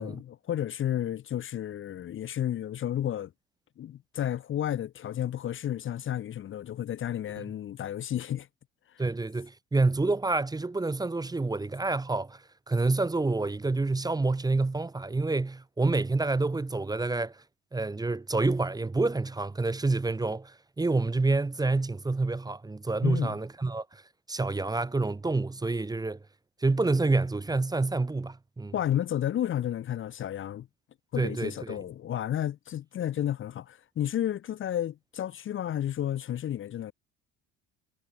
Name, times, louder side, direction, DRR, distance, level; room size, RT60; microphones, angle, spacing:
voice 1, 0.0-3.3 3.8-8.5 23.0-23.4 28.7-30.7 31.1-36.9, left 11 dB, 45° left, 0.7 m, -32 dB
voice 2, 9.0-17.4 17.7-24.0 24.3-26.2 26.6-28.7 31.2-31.8, right 3 dB, 15° right, 1.0 m, -28 dB
supercardioid pair, 90°, 29 cm